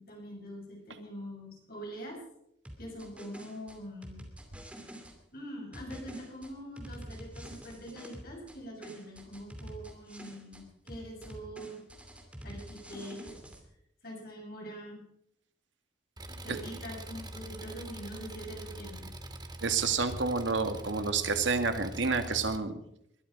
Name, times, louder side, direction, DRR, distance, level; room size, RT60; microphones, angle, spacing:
voice 1, 0.0-2.2 2.8-4.2 5.3-11.8 12.4-13.4 14.0-15.0 16.3-19.1, equal, 55° left, -1 dB, 7.2 m, -44 dB
sound 1, 2.6-5.1 5.7-8.6 8.8-10.6 10.9-13.6, right 1 dB, 5° right, 2.7 m, -46 dB
Engine, 16.2-22.6, right 1 dB, 20° right, 1.4 m, -44 dB
voice 2, 19.6-22.8, right 4 dB, 90° right, 8 dB, 1.9 m, -29 dB
21.0 x 12.5 x 5.1 m, 0.75 s
head